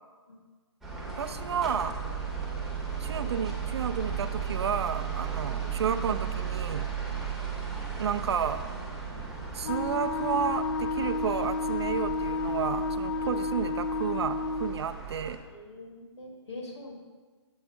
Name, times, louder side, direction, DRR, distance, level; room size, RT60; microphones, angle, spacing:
sound 1, 0.8-15.4, right 6 dB, ahead, 0.7 m, -35 dB
voice 1, 1.2-2.0 3.0-6.9 8.0-8.6 9.5-15.4, right 7 dB, 65° right, 11 dB, 0.4 m, -31 dB
Wind instrument woodwind instrument, 9.6-14.8, left 3 dB, 45° left, 0.4 m, -31 dB
voice 2, 15.5-16.9, left 2 dB, 70° left, 1 dB, 1.5 m, -44 dB
7.1 x 4.2 x 3.5 m, 1.4 s
hypercardioid pair, 145°, 15 cm